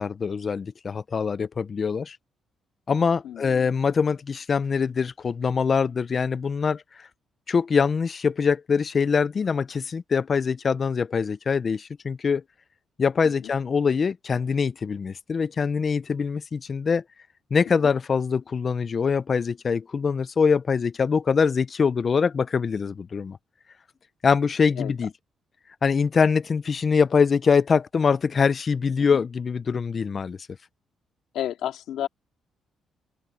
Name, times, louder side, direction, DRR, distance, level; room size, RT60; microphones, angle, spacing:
voice 1, 0.0-2.2 2.9-7.1 7.5-12.4 13.0-17.0 17.5-23.4 24.2-25.1 25.8-30.4, left 5 dB, 30° left, 0.4 m, -23 dB
voice 2, 3.2-3.8 13.2-13.5 17.7-17.9 24.8-24.9 29.0-29.2 31.3-32.1, left 11 dB, 80° left, 2.1 m, -33 dB
open air
cardioid pair, 160°, 0 cm